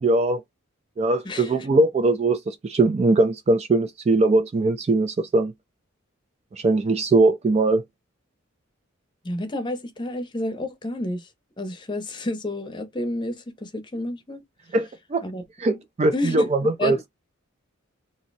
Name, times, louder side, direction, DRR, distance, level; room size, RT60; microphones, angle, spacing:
voice 1, 0.0-0.4 1.0-5.5 6.6-7.8 14.7-15.2 15.6-17.1, right 2 dB, 30° right, 0.3 m, -21 dB
voice 2, 9.2-11.3 11.6-14.4 15.2-15.4 16.1-16.5 16.8-17.1, left 1 dB, 20° left, 0.7 m, -30 dB
2.6 x 2.1 x 3.9 m
head